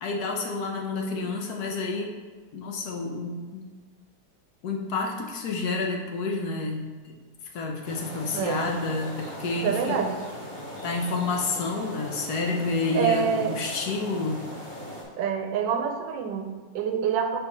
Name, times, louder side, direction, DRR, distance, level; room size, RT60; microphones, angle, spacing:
voice 1, 0.0-2.1 2.5-3.8 4.6-7.2 7.5-10.0 10.8-14.4, left 3 dB, 65° left, 1 dB, 1.1 m, -29 dB
sound 1, 7.8-15.0, left 1 dB, 35° left, 1.2 m, -39 dB
voice 2, 8.3-8.7 9.6-10.2 12.9-13.6 15.2-17.4, right 7 dB, 85° right, 6 dB, 1.3 m, -26 dB
4.7 x 4.2 x 5.2 m, 1.4 s
omnidirectional pair, 2.0 m